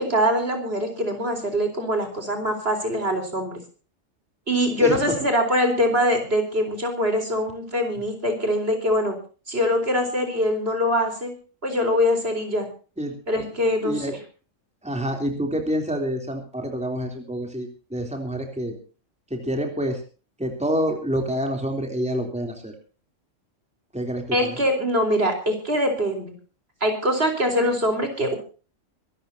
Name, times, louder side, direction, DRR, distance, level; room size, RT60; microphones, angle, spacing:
voice 1, 0.0-3.6 4.5-9.2 9.5-11.3 11.6-12.7 13.3-14.0 24.3-26.3 26.8-28.4, equal, 50° right, 5 dB, 4.4 m, -23 dB
voice 2, 14.8-18.8 19.3-20.0 20.4-22.7 23.9-24.6, equal, 5° right, 3 dB, 3.2 m, -27 dB
25.0 x 13.5 x 2.8 m, 0.37 s
omnidirectional pair, 1.3 m